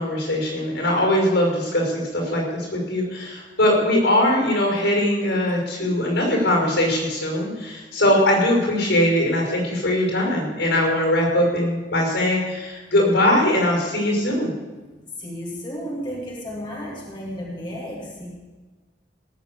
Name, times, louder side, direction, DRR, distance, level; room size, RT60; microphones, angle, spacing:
voice 1, 0.0-14.5, left 1 dB, 85° left, 0 dB, 5.9 m, -21 dB
voice 2, 15.2-18.3, equal, 25° left, -3 dB, 2.7 m, -33 dB
17.5 x 7.2 x 8.4 m, 1.2 s
head